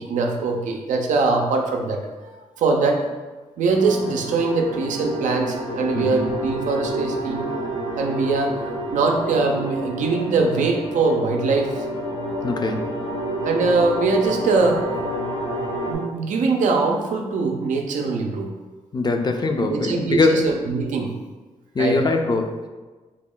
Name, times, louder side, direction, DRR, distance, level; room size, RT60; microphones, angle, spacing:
voice 1, 0.0-3.1 3.6-7.5 8.0-11.9 13.4-14.8 15.9-18.5 19.6-21.1 21.8-22.0, right 3 dB, 85° right, 2 dB, 0.4 m, -22 dB
sound 1, 3.7-15.9, right 1 dB, 80° left, 1.2 m, -29 dB
voice 2, 12.4-12.9 18.9-20.5 21.7-22.7, left 3 dB, 35° left, 5 dB, 0.4 m, -22 dB
3.4 x 2.1 x 3.6 m, 1.3 s
cardioid pair, 65°, 13 cm